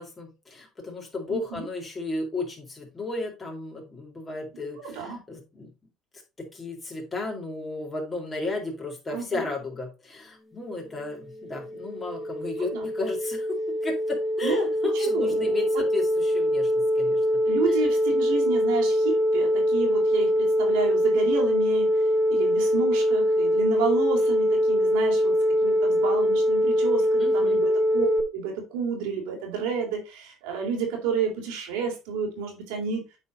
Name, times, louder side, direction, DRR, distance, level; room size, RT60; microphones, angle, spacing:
voice 1, 0.0-5.7 6.4-13.6 13.8-17.4 27.2-27.6, left 2 dB, 25° left, 0 dB, 3.7 m, -34 dB
voice 2, 1.3-1.6 4.8-5.2 9.1-9.4 12.6-12.8 14.4-14.6 15.0-15.7 17.4-21.9 22.3-33.1, right 5 dB, 85° right, 1 dB, 3.4 m, -30 dB
sound 1, 11.2-28.2, equal, 5° left, 1.4 m, -23 dB
8.5 x 4.5 x 4.0 m, 0.28 s
supercardioid pair, 95°, 0 cm